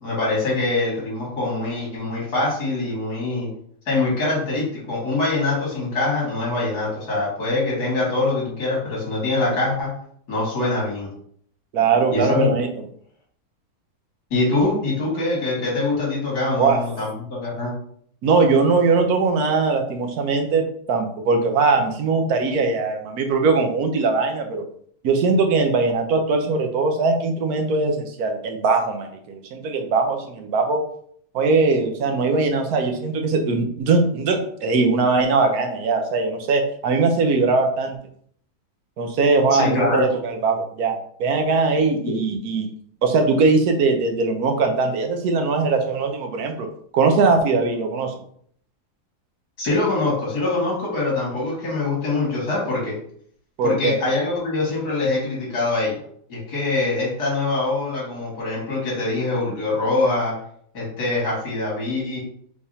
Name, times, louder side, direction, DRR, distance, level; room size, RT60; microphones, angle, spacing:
voice 1, 0.0-3.5 3.9-9.9 10.3-11.1 12.1-12.5 14.3-17.7 39.5-40.0 49.6-53.0 53.6-56.0 56.3-60.4 60.7-62.2, left 2 dB, 70° left, -4 dB, 2.4 m, -23 dB
voice 2, 11.7-12.7 16.6-16.8 18.2-24.6 25.0-30.8 31.3-37.9 39.0-42.7 43.0-46.7 46.9-48.1 53.6-53.9, right 4 dB, 70° right, 4 dB, 1.2 m, -20 dB
4.7 x 3.5 x 2.7 m, 0.62 s
omnidirectional pair, 1.8 m